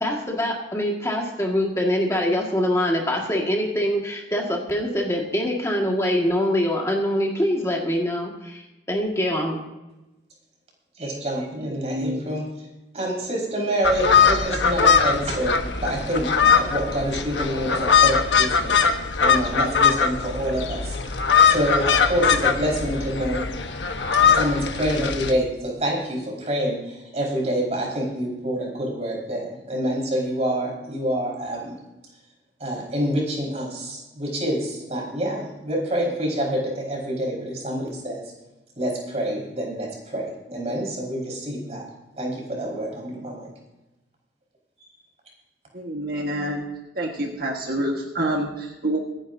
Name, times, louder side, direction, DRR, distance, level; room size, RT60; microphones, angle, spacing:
voice 1, 0.0-9.6, equal, 15° left, -1 dB, 1.9 m, -24 dB
voice 2, 11.0-12.4 12.9-18.8 19.2-21.2 21.5-23.4 24.1-31.8 32.6-38.3 38.8-41.8 42.2-43.5, right 1 dB, 35° right, -1 dB, 5.0 m, -27 dB
voice 3, 11.6-12.4 45.7-46.7 47.0-49.0, right 1 dB, 55° right, 0 dB, 1.6 m, -27 dB
sound 1, 13.8-25.3, left 6 dB, 85° left, 1.2 m, -21 dB
25.0 x 10.5 x 2.7 m, 1.0 s
head